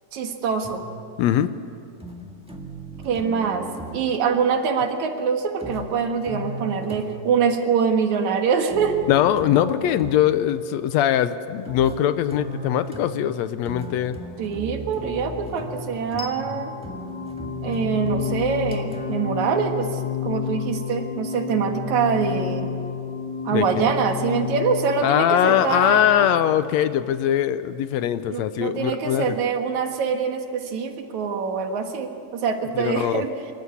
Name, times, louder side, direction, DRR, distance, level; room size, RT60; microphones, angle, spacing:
voice 1, 0.1-0.9 3.0-9.0 14.4-16.7 17.6-22.7 23.4-26.3 28.3-33.3, right 6 dB, 80° right, 5 dB, 2.9 m, -24 dB
sound 1, 0.6-1.1 2.0-4.1 5.6-7.4 8.7-10.4 11.6-19.5, equal, 5° right, 1.2 m, -37 dB
voice 2, 1.2-1.5 9.1-14.2 23.5-23.9 25.0-29.4 32.8-33.2, left 11 dB, 75° left, 12 dB, 1.8 m, -21 dB
sound 2, 16.2-27.1, left 7 dB, 45° left, 1.9 m, -31 dB
26.0 x 14.0 x 9.7 m, 2.5 s
omnidirectional pair, 3.3 m